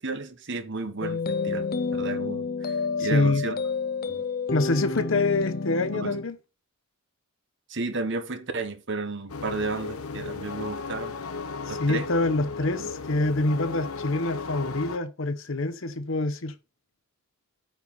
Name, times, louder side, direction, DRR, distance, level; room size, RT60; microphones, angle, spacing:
voice 1, 0.0-3.6 4.1-4.2 5.9-6.1 7.7-11.1 11.7-12.1 12.8-12.9, right 3 dB, 55° right, 1.3 m, -33 dB
sound 1, 1.0-6.2, left 4 dB, 45° left, 0.7 m, -29 dB
voice 2, 3.0-3.4 4.5-6.4 11.7-16.5, left 2 dB, 60° left, 1.0 m, -26 dB
sound 2, 9.3-15.0, left 4 dB, 85° left, 0.9 m, -35 dB
9.0 x 4.8 x 5.6 m
head